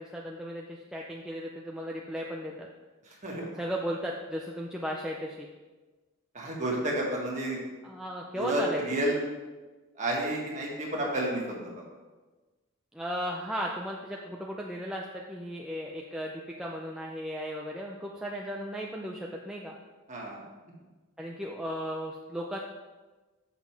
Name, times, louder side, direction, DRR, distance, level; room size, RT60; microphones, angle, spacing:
voice 1, 0.0-2.5 3.6-5.5 7.8-9.0 12.9-19.7 21.2-22.6, equal, 5° right, -2 dB, 0.4 m, -36 dB
voice 2, 6.3-7.6 8.3-9.2 10.0-11.7 20.1-20.4, right 1 dB, 35° right, -3 dB, 1.6 m, -30 dB
7.3 x 5.8 x 4.6 m, 1.2 s
head